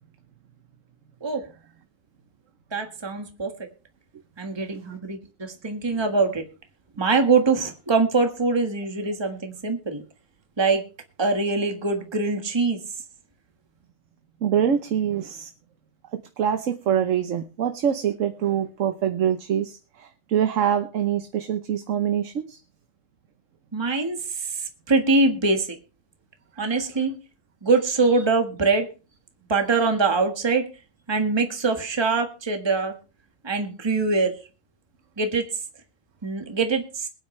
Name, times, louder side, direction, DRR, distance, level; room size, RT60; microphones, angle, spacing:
voice 1, 2.7-3.5 4.4-5.2 5.6-6.4 7.0-10.0 10.6-10.8 11.2-12.8 23.7-24.2 24.9-25.7 26.6-27.1 27.6-28.9 29.5-30.7 31.1-32.9 33.4-34.3 35.2-35.5 36.2-37.1, right 3 dB, 20° right, 5 dB, 1.5 m, -23 dB
voice 2, 14.4-15.5 16.4-22.6, right 9 dB, 70° right, 8 dB, 1.2 m, -24 dB
21.5 x 9.3 x 3.2 m, 0.33 s
omnidirectional pair, 1.4 m